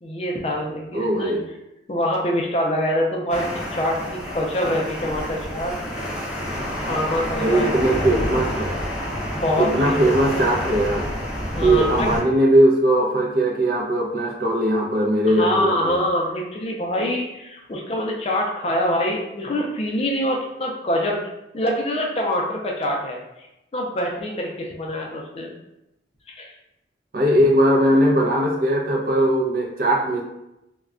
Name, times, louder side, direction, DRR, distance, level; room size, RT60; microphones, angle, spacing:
voice 1, 0.0-1.3 1.9-5.7 6.8-8.3 9.4-10.0 11.5-12.1 15.4-21.2 21.5-23.2 23.7-25.5 26.4-26.5, left 1 dB, 30° left, -1 dB, 0.4 m, -25 dB
voice 2, 0.9-1.4 7.4-8.8 9.6-11.1 11.6-16.0 27.1-30.2, right 1 dB, 50° right, -1 dB, 0.5 m, -19 dB
sound 1, 3.3-12.2, equal, 5° right, 0.7 m, -28 dB
2.2 x 2.2 x 3.6 m, 0.89 s
head